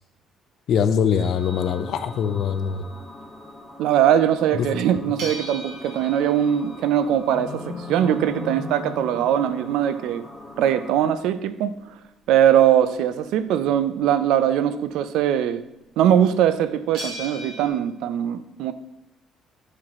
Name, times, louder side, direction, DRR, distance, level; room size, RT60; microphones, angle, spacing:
voice 1, 0.7-2.8 4.6-4.7, left 7 dB, 55° left, 0.5 m, -22 dB
sound 1, 1.1-3.3 5.2-11.9 16.9-17.7, right 1 dB, 65° right, 1.9 m, -41 dB
sound 2, 1.4-11.0, left 2 dB, 5° left, 1.3 m, -39 dB
voice 2, 3.8-10.3 10.6-11.8 12.3-15.6 16.0-18.7, right 10 dB, 85° right, 0.4 m, -21 dB
9.3 x 4.9 x 4.2 m
cardioid pair, 165°, 0 cm